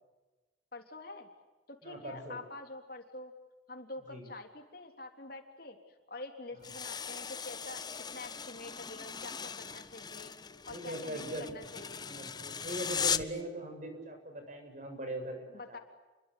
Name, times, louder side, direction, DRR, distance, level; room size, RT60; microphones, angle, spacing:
voice 1, 0.7-1.3 1.7-3.3 3.7-7.8 8.1-10.4 10.7-12.1 15.5-15.8, left 2 dB, 50° left, 4 dB, 3.6 m, -46 dB
voice 2, 1.8-2.4 4.1-4.3 6.6-6.7 10.7-11.6 12.1-15.8, right 1 dB, 40° right, 5 dB, 7.6 m, -41 dB
sound 1, 6.6-13.4, left 6 dB, 20° left, 0.8 m, -38 dB
29.5 x 23.5 x 8.3 m, 1.2 s
head